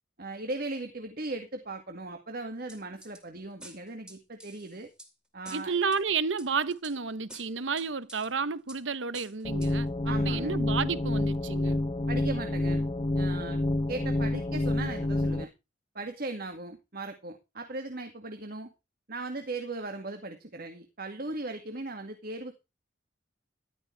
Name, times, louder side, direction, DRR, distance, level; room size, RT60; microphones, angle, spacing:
voice 1, 0.2-4.9 5.3-5.8 10.1-10.6 12.1-12.8 13.2-13.6 13.9-15.5 15.9-18.7 19.1-22.5, right 2 dB, 50° right, 2.1 m, -38 dB
sound 1, 2.7-3.2 3.6-5.1 5.5-6.0 6.4-7.0 7.3-8.3 8.7-8.8 9.1-9.7 10.1-10.2, right 1 dB, 5° right, 2.6 m, -49 dB
voice 2, 5.5-11.8, right 5 dB, 75° right, 0.9 m, -31 dB
sound 2, 9.4-15.4, left 1 dB, 30° left, 0.7 m, -28 dB
14.0 x 12.5 x 3.4 m
head